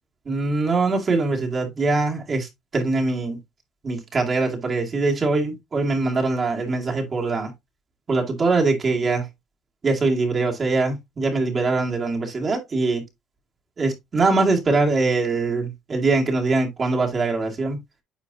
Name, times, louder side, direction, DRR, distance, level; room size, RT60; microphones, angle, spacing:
voice 1, 0.3-3.4 3.8-7.5 8.1-9.3 9.8-13.0 13.8-17.8, right 3 dB, 30° right, 2.2 m, -22 dB
9.3 x 4.5 x 2.7 m
cardioid pair, 105°, 0 cm